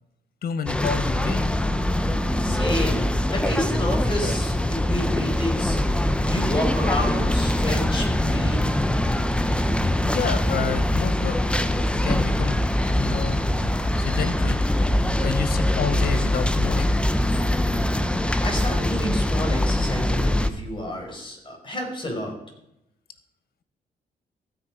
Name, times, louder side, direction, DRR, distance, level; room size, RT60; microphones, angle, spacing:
voice 1, 0.4-1.5 10.0-11.4 12.0-12.6 13.0-13.4 14.0-14.6 15.2-16.9, left 7 dB, 65° left, 12 dB, 0.8 m, -29 dB
sound 1, 0.7-20.5, left 1 dB, 5° left, 0.8 m, -23 dB
voice 2, 2.4-3.0 3.3-8.8 18.4-22.3, equal, 30° left, 1 dB, 4.8 m, -30 dB
15.5 x 6.1 x 5.0 m, 0.82 s
supercardioid pair, 65°, 17 cm